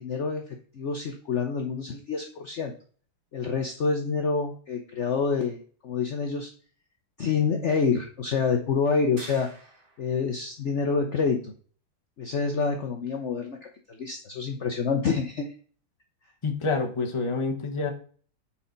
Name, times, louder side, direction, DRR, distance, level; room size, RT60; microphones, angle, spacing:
voice 1, 0.0-2.7 3.3-6.5 7.2-9.5 10.0-11.5 12.2-15.5, left 5 dB, 65° left, 4 dB, 0.7 m, -27 dB
sound 1, 9.2-10.2, right 2 dB, 30° right, 1.3 m, -47 dB
voice 2, 16.4-17.9, left 4 dB, 20° left, 2 dB, 0.8 m, -27 dB
7.1 x 4.7 x 5.2 m, 0.43 s
omnidirectional pair, 2.3 m